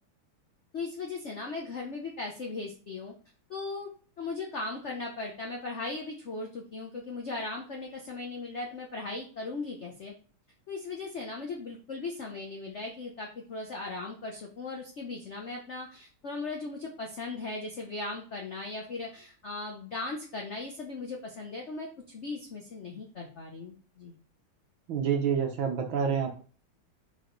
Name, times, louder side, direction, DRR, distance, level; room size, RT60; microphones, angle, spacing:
voice 1, 0.7-3.1 3.5-3.9 4.2-10.1 10.7-24.1, left 3 dB, 55° left, 0 dB, 0.8 m, -38 dB
voice 2, 24.9-26.3, right 7 dB, 65° right, 2 dB, 1.7 m, -28 dB
4.9 x 4.8 x 3.9 m, 0.40 s
omnidirectional pair, 2.4 m